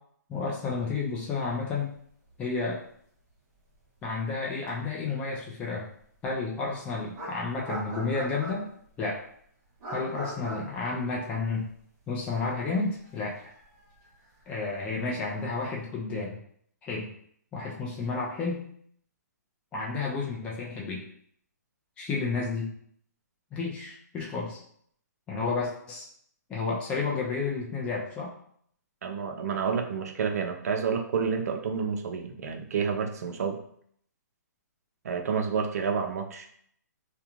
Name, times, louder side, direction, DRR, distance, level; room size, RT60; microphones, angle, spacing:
voice 1, 0.3-1.9 2.4-2.8 4.0-5.9 6.2-8.7 9.0-9.2 9.9-11.7 12.1-13.4 14.5-16.4 16.8-17.1 17.5-18.7 19.7-21.0 22.0-22.7 23.5-24.6 25.3-26.1 26.5-28.3, left 4 dB, 10° left, -4 dB, 0.4 m, -31 dB
sound 1, 2.0-2.1 2.3-2.5 4.7-4.8 6.5-6.6 7.1-8.9 9.8-11.8 12.1-12.2 12.9-15.3, right 1 dB, 25° right, 0.9 m, -40 dB
voice 2, 29.0-33.6 35.0-36.5, right 6 dB, 60° right, 5 dB, 0.5 m, -29 dB
2.4 x 2.1 x 2.9 m, 0.63 s
hypercardioid pair, 145°, 10 cm